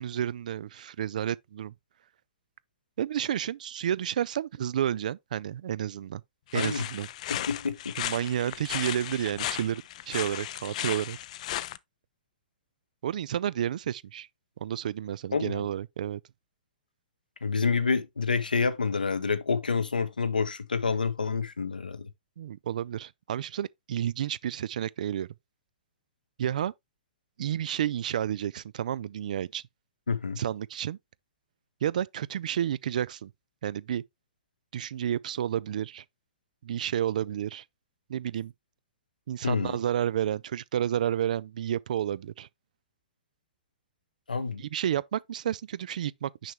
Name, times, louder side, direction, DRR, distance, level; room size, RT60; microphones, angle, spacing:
voice 1, 0.0-1.7 3.0-6.2 6.5-7.1 8.0-11.2 13.0-14.3 14.6-16.2 22.4-25.3 26.4-26.7 27.4-29.6 30.4-31.0 31.8-33.3 33.6-34.0 34.7-36.0 36.6-37.6 38.1-38.5 39.3-42.5 44.6-46.5, right 10 dB, 65° right, 0.3 m, -31 dB
voice 2, 6.5-6.9 7.3-7.9 15.3-15.6 17.4-22.1 30.1-30.4 39.4-39.8 44.3-44.6, left 5 dB, 85° left, 0.8 m, -28 dB
sound 1, 6.5-11.8, left 13 dB, 55° left, 0.4 m, -35 dB
6.4 x 5.6 x 3.0 m
figure-of-eight pair, 105°, 5 cm